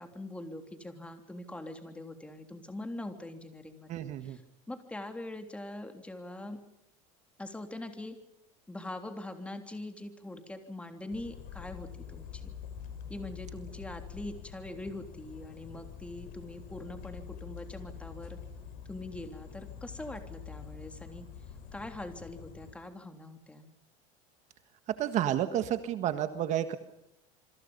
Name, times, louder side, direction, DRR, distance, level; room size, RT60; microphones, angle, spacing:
voice 1, 0.0-4.4 4.7-6.6 7.4-8.2 8.7-12.5 13.1-18.4 18.9-21.2 21.7-23.7, left 1 dB, 5° left, 6 dB, 3.3 m, -43 dB
voice 2, 3.9-4.4 25.0-26.8, right 11 dB, 45° right, 9 dB, 1.7 m, -30 dB
sound 1, 11.1-22.7, left 8 dB, 55° left, 5.5 m, -46 dB
27.0 x 25.0 x 5.5 m, 0.82 s
supercardioid pair, 135°, 17 cm